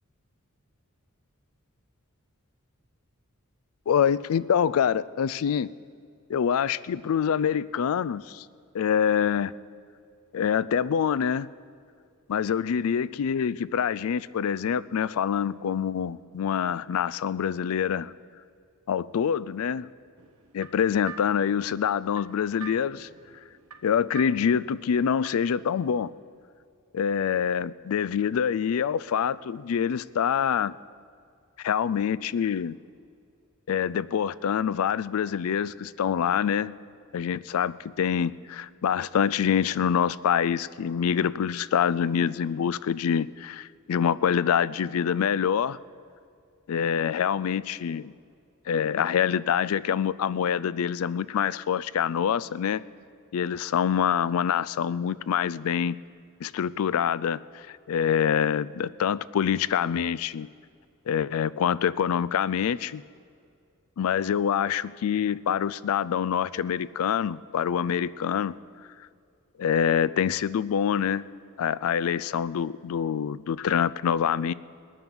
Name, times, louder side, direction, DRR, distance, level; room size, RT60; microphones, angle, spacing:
voice 1, 3.9-5.7 6.3-8.4 8.7-9.5 10.3-11.5 12.3-18.1 18.9-19.9 20.5-23.1 23.8-26.1 26.9-30.7 31.6-32.8 33.7-36.7 37.1-45.8 46.7-48.1 48.7-52.8 53.3-56.0 56.4-60.5 61.1-63.0 64.0-68.6 69.6-71.2 71.6-74.5, left 8 dB, 70° left, 19 dB, 0.4 m, -26 dB
sound 1, 20.2-25.6, right 6 dB, 75° right, 0.9 m, -47 dB
19.5 x 9.1 x 6.1 m, 2.3 s
head